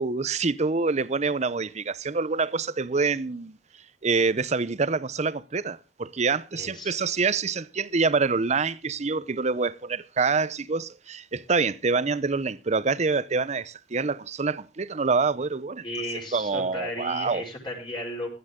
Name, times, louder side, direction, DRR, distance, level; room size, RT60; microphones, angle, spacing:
voice 1, 0.0-3.6 4.0-15.8 16.3-17.5, right 4 dB, 40° right, 0.7 m, -26 dB
voice 2, 6.5-7.2 15.8-18.3, left 1 dB, 30° left, 5.2 m, -35 dB
16.0 x 12.5 x 3.7 m
head